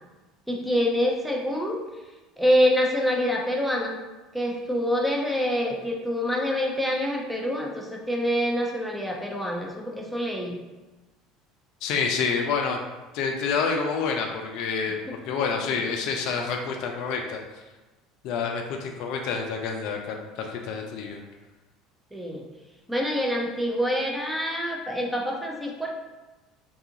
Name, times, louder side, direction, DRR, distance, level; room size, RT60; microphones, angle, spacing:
voice 1, 0.5-1.8 2.4-4.0 4.3-10.6 22.1-22.4 22.9-25.9, equal, 5° right, 0 dB, 0.6 m, -26 dB
voice 2, 11.8-12.8 13.1-17.4 18.2-21.2, left 5 dB, 65° left, 3 dB, 0.3 m, -28 dB
2.6 x 2.4 x 2.7 m, 1.1 s
hypercardioid pair, 70°, 0 cm